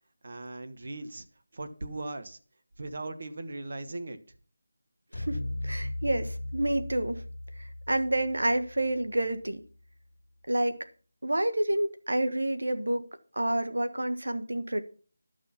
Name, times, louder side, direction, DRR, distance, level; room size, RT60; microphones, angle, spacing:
voice 1, 0.2-1.2 1.5-2.4 2.8-4.2, right 2 dB, 50° right, 1.2 m, -38 dB
sound 1, 5.1-9.5, left 1 dB, 60° left, 1.7 m, -37 dB
voice 2, 5.1-7.2 7.9-9.6 10.5-10.8 11.2-13.0 13.4-14.8, right 1 dB, 85° right, 1.3 m, -28 dB
12.0 x 6.3 x 5.8 m
figure-of-eight pair, 170°, 0 cm